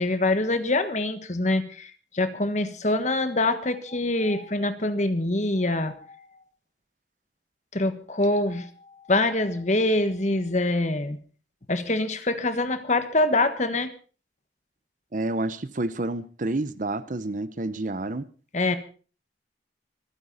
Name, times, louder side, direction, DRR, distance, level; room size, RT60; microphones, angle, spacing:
voice 1, 0.0-6.2 7.7-8.7 9.0-11.2 11.7-13.9 18.5-18.8, left 2 dB, 40° left, 1.4 m, -25 dB
voice 2, 15.1-18.3, right 2 dB, 45° right, 0.8 m, -29 dB
26.0 x 10.0 x 4.1 m
head